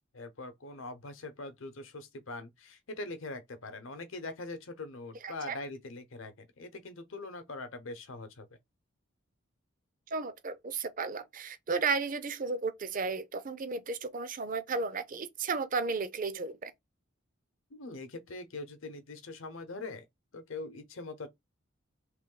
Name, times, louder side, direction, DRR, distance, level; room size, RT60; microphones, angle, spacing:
voice 1, 0.1-8.5 17.7-20.0 20.3-21.3, left 2 dB, 70° left, 0.8 m, -42 dB
voice 2, 5.2-5.6 10.1-16.7, right 4 dB, 40° right, 0.6 m, -34 dB
3.3 x 3.0 x 3.8 m
head